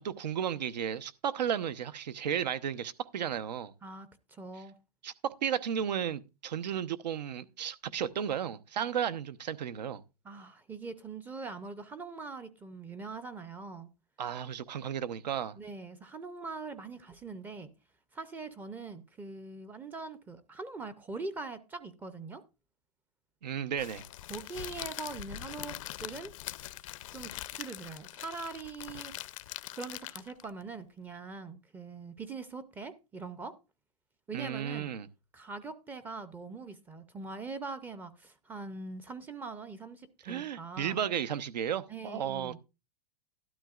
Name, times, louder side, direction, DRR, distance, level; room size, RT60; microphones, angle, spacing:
voice 1, 0.0-3.7 5.0-10.0 14.2-15.6 23.4-24.0 34.3-35.1 40.2-42.6, right 9 dB, 80° right, 0.9 m, -34 dB
voice 2, 3.8-4.8 10.2-13.9 15.6-17.7 18.1-22.4 24.3-26.3 27.1-29.4 29.7-33.5 34.3-34.9 35.3-41.0 41.9-42.6, right 4 dB, 10° right, 0.5 m, -42 dB
Crackle, 23.8-30.5, left 15 dB, 50° left, 0.5 m, -43 dB
12.5 x 12.0 x 2.4 m
hypercardioid pair, 150°, 21 cm